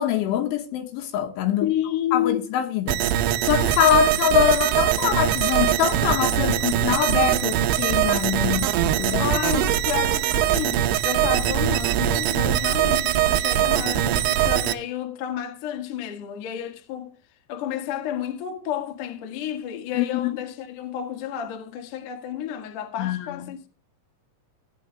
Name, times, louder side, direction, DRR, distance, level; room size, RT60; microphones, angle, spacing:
voice 1, 0.0-1.7 2.1-9.3 20.0-20.3 23.0-23.4, left 11 dB, 75° left, 3.5 m, -24 dB
voice 2, 1.6-2.5 9.2-17.2 17.5-23.7, left 10 dB, 55° left, 2.4 m, -30 dB
sound 1, 2.9-14.7, right 12 dB, 85° right, 2.3 m, -22 dB
15.5 x 10.0 x 3.3 m
omnidirectional pair, 5.9 m